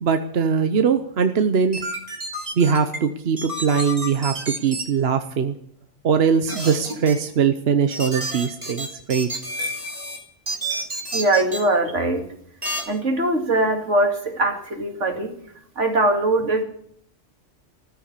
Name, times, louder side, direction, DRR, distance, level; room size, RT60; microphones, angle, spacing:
voice 1, 0.0-1.8 2.6-5.5 6.0-9.3, right 6 dB, 60° right, 8 dB, 1.1 m, -21 dB
sound 1, 1.7-3.0 3.4-4.8 6.5-7.1 7.9-10.2 10.5-11.6 12.6-12.8, right 1 dB, 30° right, 3.5 m, -29 dB
voice 2, 11.1-12.3 12.9-15.4 15.8-16.6, right 2 dB, 80° right, 3 dB, 2.7 m, -21 dB
14.5 x 13.0 x 6.7 m, 0.68 s
omnidirectional pair, 1.2 m